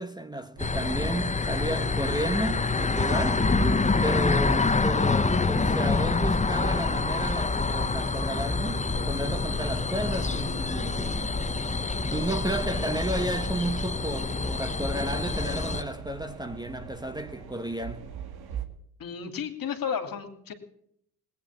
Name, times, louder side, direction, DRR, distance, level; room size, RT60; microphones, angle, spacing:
voice 1, 0.0-3.5 4.0-11.4 12.1-18.1, right 1 dB, 10° right, 1.2 m, -32 dB
sound 1, 0.6-15.8, left 3 dB, 15° left, 1.0 m, -26 dB
sound 2, 0.6-18.6, right 7 dB, 60° right, 2.2 m, -43 dB
voice 2, 19.0-20.5, left 7 dB, 50° left, 2.8 m, -33 dB
19.0 x 9.4 x 7.4 m
supercardioid pair, 65°, 43 cm